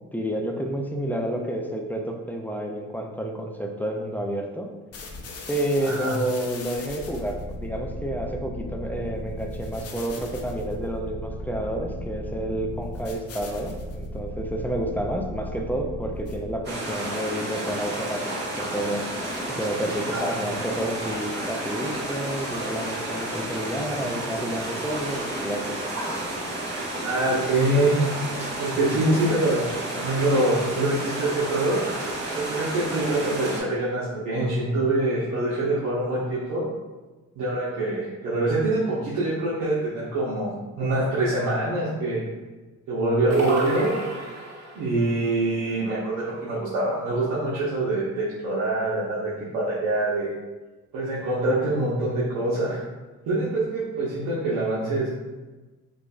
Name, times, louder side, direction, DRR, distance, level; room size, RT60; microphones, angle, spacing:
voice 1, 0.1-4.7 5.5-19.0 19.5-25.8, right 1 dB, 5° left, 2 dB, 0.4 m, -30 dB
sound 1, 4.9-16.7, left 1 dB, 55° left, 0.7 m, -36 dB
voice 2, 5.8-6.2 20.1-20.6 27.0-27.9 28.6-29.7 29.9-32.0 32.3-36.6 37.4-42.2 42.9-43.9 44.7-50.3 50.9-52.8 53.3-55.1, right 2 dB, 85° right, -8 dB, 0.9 m, -25 dB
sound 2, 16.6-33.6, right 1 dB, 35° right, 1.4 m, -31 dB
sound 3, 43.3-44.8, right 2 dB, 60° right, 0.9 m, -27 dB
5.0 x 2.5 x 2.4 m, 1.2 s
cardioid pair, 90°, 30 cm